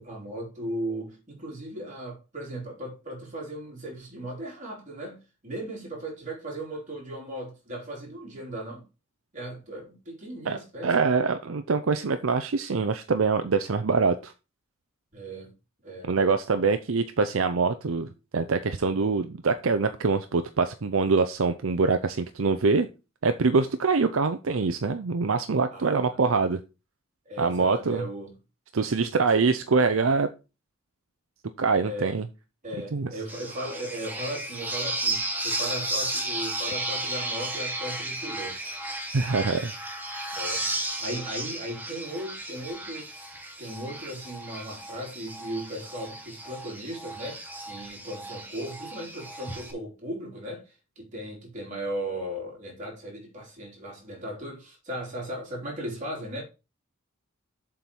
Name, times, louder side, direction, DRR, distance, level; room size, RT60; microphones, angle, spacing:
voice 1, 0.0-8.9 9.3-11.3 15.1-15.5 15.8-16.1 25.7-26.2 27.3-28.4 29.0-29.4 31.8-32.1 32.6-38.8 40.3-56.4, right 1 dB, 40° right, 3.8 m, -37 dB
voice 2, 10.8-14.3 16.0-22.9 23.2-26.6 27.4-28.0 28.7-30.3 31.6-32.3 32.9-33.1 39.1-39.7, right 4 dB, 75° right, 0.6 m, -24 dB
sound 1, 33.3-49.7, right 2 dB, 10° right, 1.4 m, -34 dB
7.5 x 4.5 x 5.3 m
head